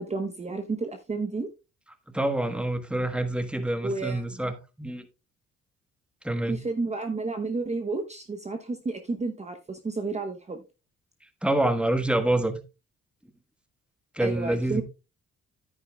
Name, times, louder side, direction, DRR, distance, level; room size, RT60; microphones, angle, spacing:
voice 1, 0.0-1.5 3.8-4.2 6.5-10.6 14.2-14.8, right 3 dB, 20° right, 0.9 m, -31 dB
voice 2, 2.1-5.0 6.2-6.6 11.4-12.6 14.1-14.8, right 1 dB, 5° right, 1.2 m, -27 dB
10.0 x 9.1 x 2.3 m
cardioid pair, 90°, 30 cm